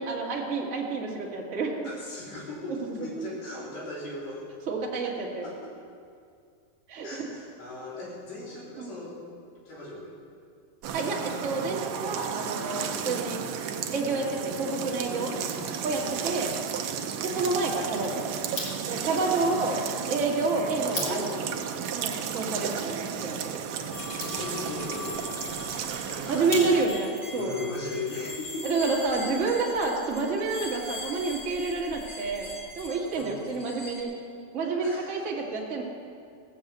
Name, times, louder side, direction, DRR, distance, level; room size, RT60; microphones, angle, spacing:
voice 1, 0.0-1.9 4.7-5.5 6.9-7.3 8.8-9.0 10.9-13.4 13.9-15.3 15.8-16.5 17.2-18.3 18.9-19.7 20.1-21.2 21.9-23.6 26.3-27.5 28.6-32.5 32.7-34.1 34.5-35.8, right 3 dB, 30° right, -2 dB, 1.4 m, -29 dB
voice 2, 1.8-4.4 5.4-5.8 7.0-9.2 9.7-10.1 15.1-15.7 19.3-20.0 20.8-21.3 21.8-21.9 24.1-25.2 26.0-26.7 27.3-29.3 33.1-33.5 34.8-35.2, left 2 dB, 85° left, -6 dB, 5.2 m, -38 dB
sound 1, 10.8-26.8, right 8 dB, 90° right, 1.5 m, -33 dB
sound 2, 18.4-27.1, left 2 dB, 45° left, 3.5 m, -42 dB
sound 3, 23.9-34.0, left 2 dB, 20° left, 1.7 m, -41 dB
16.5 x 7.2 x 7.9 m, 2.3 s
omnidirectional pair, 4.0 m